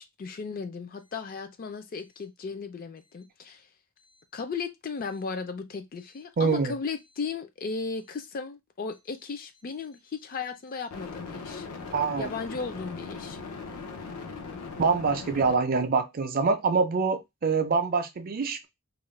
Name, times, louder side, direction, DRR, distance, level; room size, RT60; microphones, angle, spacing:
voice 1, 0.0-3.7 4.3-11.7 12.2-13.4, left 5 dB, 40° left, 0.4 m, -36 dB
sound 1, 6.0-6.2 10.9-15.5, left 4 dB, 90° left, 0.6 m, -39 dB
voice 2, 6.4-6.7 11.9-12.3 14.8-18.7, right 4 dB, 40° right, 0.4 m, -25 dB
2.4 x 2.1 x 3.1 m
head